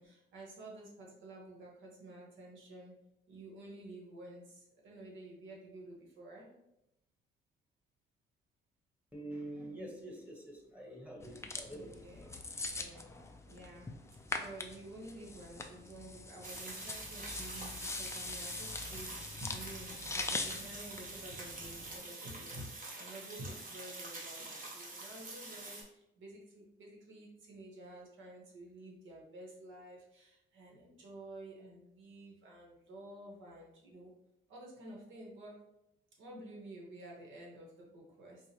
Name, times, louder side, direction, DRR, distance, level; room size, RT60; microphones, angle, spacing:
voice 1, 0.0-2.9 3.3-6.4 11.7-12.3 12.7-13.0 13.5-13.8 14.3-22.7 22.9-25.8 26.2-34.1 34.5-35.6 36.2-38.4, right 1 dB, 75° right, -2 dB, 1.2 m, -51 dB
voice 2, 9.1-12.4, right 1 dB, 5° right, -1 dB, 1.1 m, -46 dB
sound 1, 11.2-22.0, left 3 dB, 15° left, 0.4 m, -43 dB
sound 2, 16.4-25.8, right 2 dB, 45° right, 1.0 m, -46 dB
4.6 x 2.2 x 2.8 m, 0.86 s
cardioid pair, 90°, 20 cm